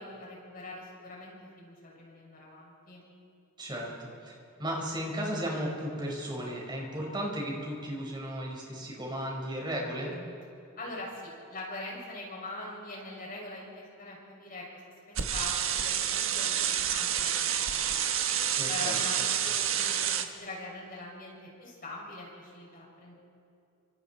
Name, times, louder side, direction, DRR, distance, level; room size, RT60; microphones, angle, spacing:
voice 1, 0.0-3.1 10.8-18.1 18.7-23.1, left 2 dB, 40° left, -3 dB, 7.1 m, -43 dB
voice 2, 3.6-4.3 4.6-10.2 18.6-19.0, equal, 20° right, -2 dB, 5.6 m, -35 dB
sound 1, 15.2-20.3, right 9 dB, 65° right, 1.5 m, -29 dB
29.5 x 26.5 x 4.6 m, 2.8 s
head